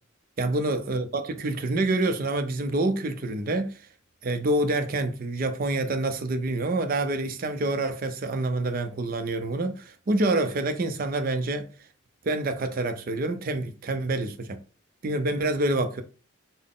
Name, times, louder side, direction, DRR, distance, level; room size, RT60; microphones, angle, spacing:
voice 1, 0.4-3.8 4.2-11.7 12.2-14.6 15.0-16.0, right 2 dB, 45° right, 0.4 m, -27 dB
3.7 x 2.0 x 3.6 m
head